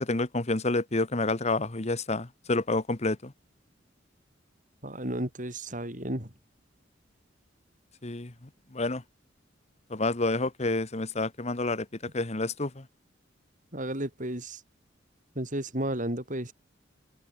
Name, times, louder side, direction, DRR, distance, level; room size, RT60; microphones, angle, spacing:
voice 1, 0.0-3.3 8.0-8.3 8.7-9.0 9.9-12.8, left 2 dB, 35° left, 1.5 m, -29 dB
voice 2, 4.8-6.3 13.7-14.6 15.4-16.5, right 1 dB, 45° right, 6.8 m, -33 dB
head